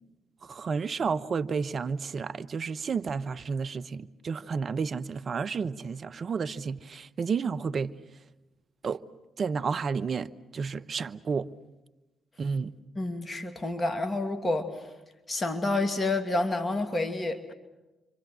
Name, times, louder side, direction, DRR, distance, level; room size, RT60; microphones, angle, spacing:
voice 1, 0.5-7.9 8.8-9.0 9.4-11.5 12.4-12.7, right 5 dB, 50° right, 0.9 m, -31 dB
voice 2, 13.0-14.7 15.3-17.5, left 2 dB, 30° left, 2.5 m, -29 dB
29.5 x 25.5 x 6.3 m
hypercardioid pair, 45°, 0 cm